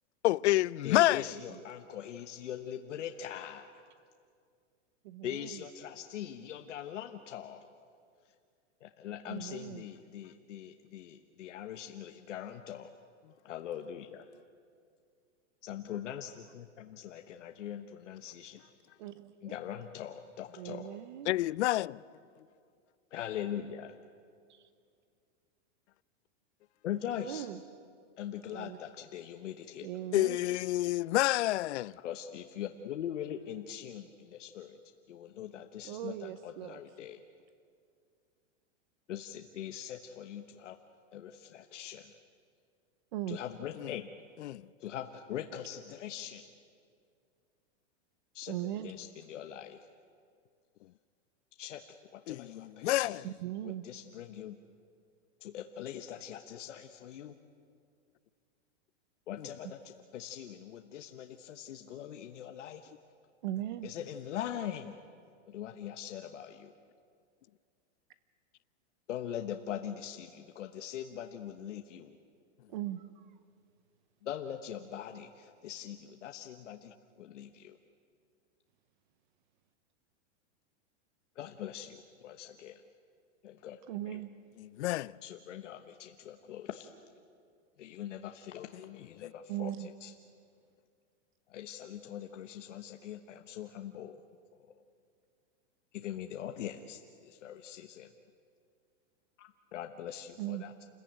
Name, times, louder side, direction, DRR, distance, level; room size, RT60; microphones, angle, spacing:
voice 1, 0.2-1.3 21.3-22.0 30.1-32.0 43.8-43.9 44.4-44.6 52.3-53.3 59.4-59.5 84.6-85.2 88.7-89.3, left 16 dB, 70° left, 0.5 m, -29 dB
voice 2, 0.8-3.6 5.2-7.7 8.8-12.9 13.4-14.2 15.6-18.6 19.4-21.0 23.1-23.9 26.8-27.5 28.2-29.9 32.0-34.8 35.1-37.2 39.1-40.8 41.1-42.2 43.3-44.1 44.8-46.5 48.3-49.8 51.6-51.8 52.1-53.2 53.6-54.6 55.4-57.3 59.3-62.9 63.8-65.0 65.5-66.7 69.1-72.2 74.2-77.8 81.3-82.8 83.4-83.8 84.1-84.2 85.2-86.9 87.8-90.1 91.5-94.2 94.7-94.8 95.9-98.1 99.4-100.8, left 10 dB, 85° left, 1.3 m, -42 dB
voice 3, 5.0-5.6 9.3-9.8 19.0-19.5 20.6-21.3 24.5-24.6 27.2-27.6 28.5-28.8 29.8-30.4 35.8-36.8 43.1-43.4 48.5-48.9 53.2-53.8 63.4-63.9 72.7-73.3 83.9-84.3 89.5-89.9 100.4-100.7, right 13 dB, 40° right, 0.7 m, -39 dB
28.5 x 15.0 x 9.2 m
supercardioid pair, 170°, 36 cm